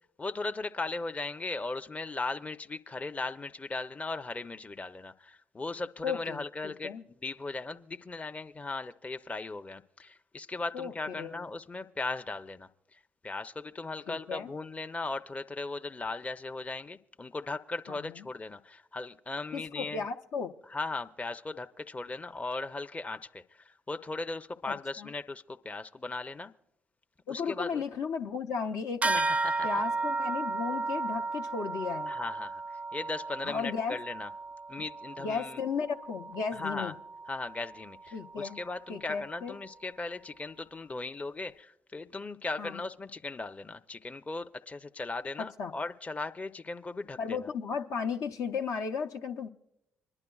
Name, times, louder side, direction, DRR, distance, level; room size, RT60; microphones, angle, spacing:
voice 1, 0.2-20.1 20.7-26.5 27.3-27.8 29.1-29.7 32.1-34.3 34.7-35.6 36.5-36.9 37.3-47.5, left 3 dB, 25° left, 8 dB, 0.6 m, -38 dB
voice 2, 6.0-7.0 10.7-11.4 14.1-14.5 17.9-18.2 19.5-20.5 24.7-25.1 27.3-29.2 29.6-32.1 33.4-34.0 35.2-36.9 38.1-38.6 38.9-39.5 42.6-42.8 45.6-45.7 47.2-49.5, left 6 dB, 70° left, 3 dB, 0.7 m, -35 dB
sound 1, 29.0-38.8, right 3 dB, 25° right, 0.4 m, -35 dB
25.5 x 10.5 x 2.3 m, 0.82 s
hypercardioid pair, 50°, 6 cm